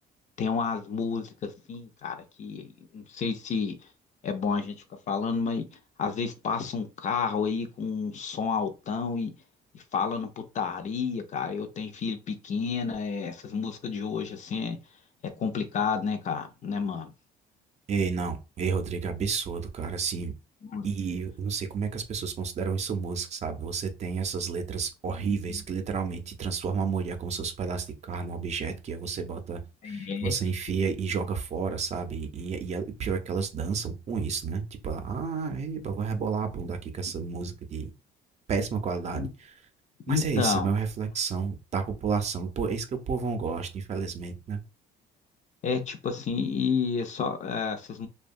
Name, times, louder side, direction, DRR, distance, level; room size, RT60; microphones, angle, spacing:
voice 1, 0.4-3.8 4.2-4.8 5.1-5.6 6.0-9.3 9.7-14.8 15.4-17.1 20.6-20.9 25.1-25.6 29.8-30.3 39.1-39.3 40.1-40.7 45.6-48.1, left 5 dB, 45° left, 0.5 m, -30 dB
voice 2, 17.9-20.3 20.8-37.9 38.5-39.6 40.1-44.6, right 5 dB, 40° right, 0.5 m, -31 dB
2.7 x 2.2 x 2.5 m
cardioid pair, 110°, 17 cm